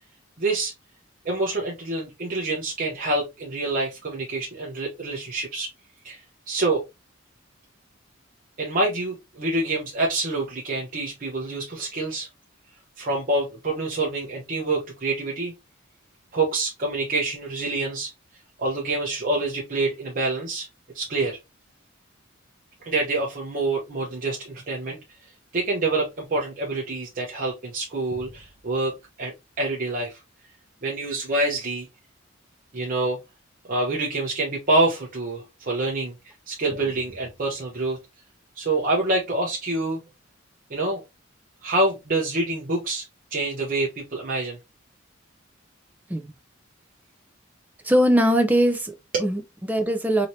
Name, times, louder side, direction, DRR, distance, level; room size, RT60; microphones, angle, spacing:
voice 1, 0.4-0.7 1.2-5.7 6.0-6.2 6.5-6.8 8.6-12.3 13.0-15.5 16.3-18.1 18.6-20.7 20.9-21.4 22.8-25.0 25.5-30.2 30.8-31.9 32.7-33.2 33.7-36.1 36.5-38.0 38.6-40.0 40.7-41.0 41.6-43.0 43.3-44.6 49.1-49.2, right 2 dB, 45° right, 0.9 m, -26 dB
voice 2, 47.8-48.9 49.2-50.3, equal, 10° right, 0.5 m, -21 dB
3.1 x 2.9 x 2.7 m
head